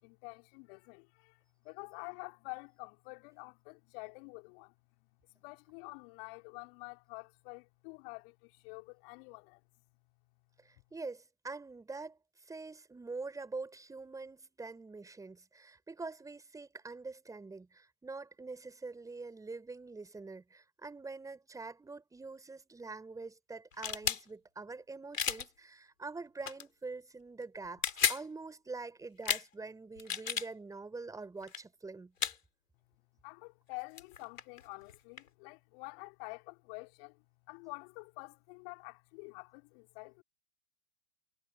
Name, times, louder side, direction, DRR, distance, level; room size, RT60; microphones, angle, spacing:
voice 1, 0.0-4.7 5.0-5.1 5.3-9.6 33.2-40.2, left 34 dB, 45° left, 5.2 m, -48 dB
voice 2, 10.6-12.2 12.5-32.1, right 3 dB, 10° right, 5.3 m, -45 dB
sound 1, 23.7-24.2 25.1-25.5 26.4-26.6 27.6-28.2 29.2-29.4 30.0-30.5 31.4-31.6 32.2-32.4 33.7-33.8 34.0-35.3, left 7 dB, 80° left, 3.9 m, -33 dB
hypercardioid pair, 110°, 39 cm